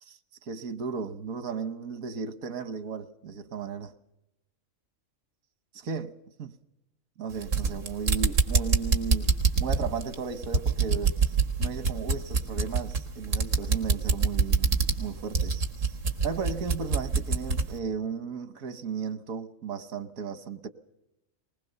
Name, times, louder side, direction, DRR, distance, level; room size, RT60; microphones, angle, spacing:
voice 1, 0.1-3.9 5.7-6.1 6.4-6.5 7.2-9.3 9.6-11.3 11.6-15.9 16.2-20.7, right 5 dB, 90° right, 1.5 m, -35 dB
sound 1, 7.3-17.7, right 4 dB, 70° right, 2.1 m, -26 dB
20.0 x 20.0 x 6.8 m
omnidirectional pair, 1.4 m